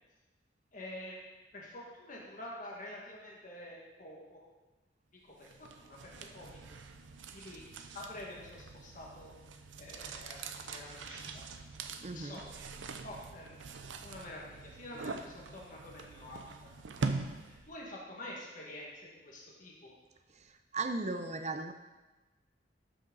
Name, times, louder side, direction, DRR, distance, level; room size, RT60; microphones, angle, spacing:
voice 1, 0.7-1.2 1.5-4.4 5.4-6.6 7.3-7.6 7.9-9.3 9.8-11.5 12.0-12.7 13.0-13.6 14.0-16.7 17.0-17.1 17.4-19.9, left 1 dB, 45° left, -4 dB, 1.9 m, -47 dB
sound 1, 5.4-17.8, right 3 dB, 85° right, 0.6 m, -43 dB
voice 2, 12.0-12.4 20.7-21.7, right 3 dB, 35° right, 7 dB, 0.6 m, -36 dB
12.0 x 6.1 x 4.0 m, 1.2 s
head